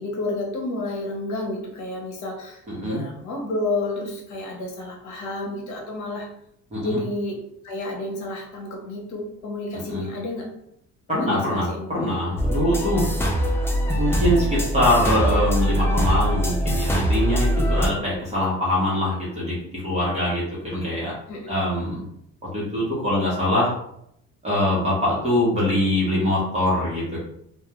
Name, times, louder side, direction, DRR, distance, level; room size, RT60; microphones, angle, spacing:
voice 1, 0.0-6.3 6.8-7.4 7.6-10.5 11.1-11.9 21.3-21.5, left 2 dB, 70° left, 0 dB, 0.9 m, -30 dB
voice 2, 2.7-3.0 6.7-7.0 9.9-10.0 11.1-13.0 14.0-19.5 19.8-21.1 21.5-22.0 22.5-23.7 24.4-27.2, left 1 dB, 20° right, -7 dB, 0.9 m, -23 dB
sound 1, 12.4-17.9, equal, 10° left, 0.3 m, -22 dB
2.3 x 2.2 x 2.9 m, 0.75 s
cardioid pair, 125°, 30 cm